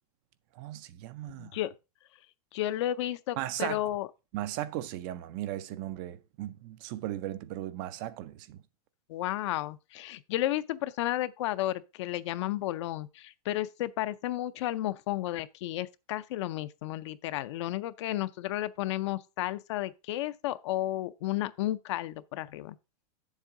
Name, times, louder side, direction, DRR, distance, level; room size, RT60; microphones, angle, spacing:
voice 1, 0.6-1.5 3.4-3.8 4.3-8.6, right 14 dB, 35° right, 0.4 m, -37 dB
voice 2, 1.4-1.7 2.5-4.1 9.1-22.8, left 14 dB, 50° left, 0.5 m, -32 dB
8.1 x 7.3 x 3.8 m
supercardioid pair, 160°, 19 cm